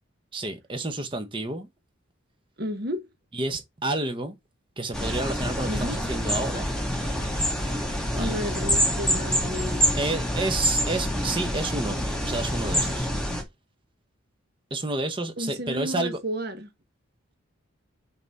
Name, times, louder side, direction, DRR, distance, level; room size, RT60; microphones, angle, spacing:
voice 1, 0.3-1.7 3.3-4.3 4.8-6.7 8.2-8.4 10.0-13.1 14.7-16.2, right 2 dB, 25° right, 1.0 m, -30 dB
voice 2, 2.6-3.1 5.7-6.0 8.2-10.0 15.4-16.7, equal, 50° right, 1.5 m, -32 dB
sound 1, 4.9-13.4, equal, 5° left, 1.8 m, -26 dB
5.8 x 4.2 x 4.4 m
head